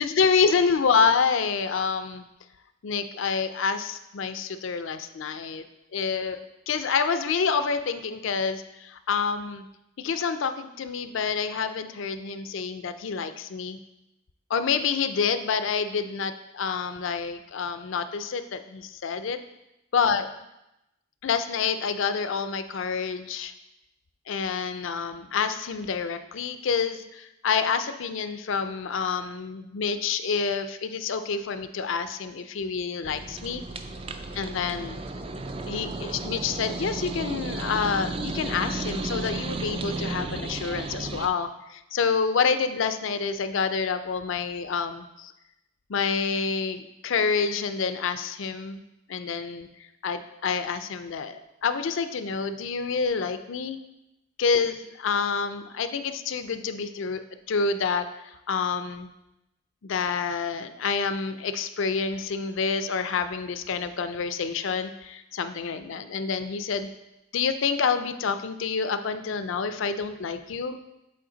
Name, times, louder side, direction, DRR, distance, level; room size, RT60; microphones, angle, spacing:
voice 1, 0.0-2.3 2.8-5.6 5.9-9.6 10.0-13.8 14.5-19.4 19.9-20.3 21.2-23.5 24.3-33.6 34.3-35.0 35.7-45.3 45.9-48.8 49.1-49.7 50.0-53.8 54.4-57.2 57.5-59.1 59.8-66.9 67.3-70.8, left 5 dB, 70° left, 10 dB, 0.4 m, -28 dB
sound 1, 33.0-41.3, right 2 dB, 25° right, 0.3 m, -33 dB
7.6 x 4.3 x 3.9 m, 0.91 s
head